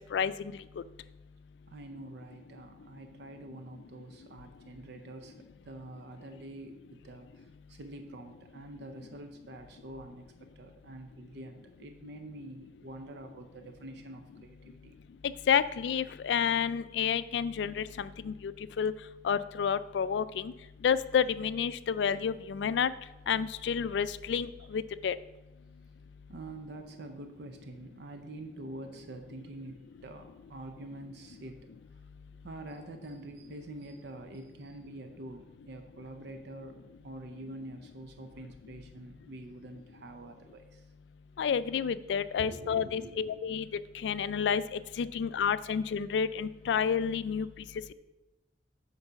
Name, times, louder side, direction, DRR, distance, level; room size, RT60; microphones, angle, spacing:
voice 1, 1.7-5.3 5.6-10.3 10.6-15.0 17.6-17.7 23.1-23.2 23.9-24.0 24.6-24.7 26.3-31.6 32.4-40.9 42.4-43.3 44.8-45.2, right 1 dB, 65° right, 6 dB, 0.6 m, -46 dB
voice 2, 15.5-18.5 18.8-18.9 19.2-20.5 20.8-22.9 23.3-25.1 41.4-43.7 44.0-44.6 45.0-47.5, left 7 dB, 70° left, 15 dB, 0.3 m, -29 dB
8.1 x 3.9 x 5.7 m, 1.0 s
head